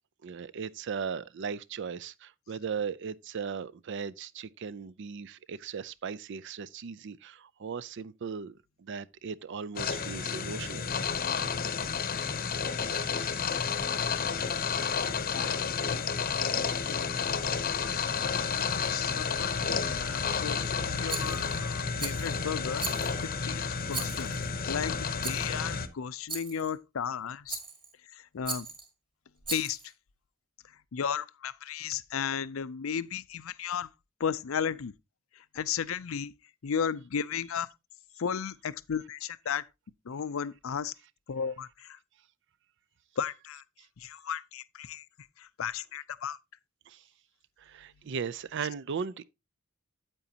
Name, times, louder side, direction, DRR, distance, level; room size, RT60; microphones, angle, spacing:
voice 1, 0.2-10.9 12.2-13.5 13.8-13.9 15.4-15.5 46.9-47.0 47.6-49.2, right 6 dB, 60° right, 0.4 m, -38 dB
sound 1, 9.8-25.9, left 6 dB, 45° left, 0.8 m, -31 dB
voice 2, 15.3-16.3 16.9-17.1 17.6-19.6 20.0-22.9 23.4-24.3 24.7-27.6 28.3-28.7 29.5-29.8 30.9-33.9 34.2-34.9 35.5-36.3 36.6-37.7 38.2-39.6 40.1-40.9 41.3-42.0 43.2-43.6 44.0-45.0 45.4-46.4, left 7 dB, 75° left, 0.5 m, -35 dB
Rattle, 21.1-21.6 22.0-22.4 22.8-23.3 23.9-24.5 25.2-25.5 26.3-26.7 27.5-27.9 28.4-28.9 29.4-29.9, right 4 dB, 25° right, 1.9 m, -38 dB
9.0 x 8.2 x 2.8 m
head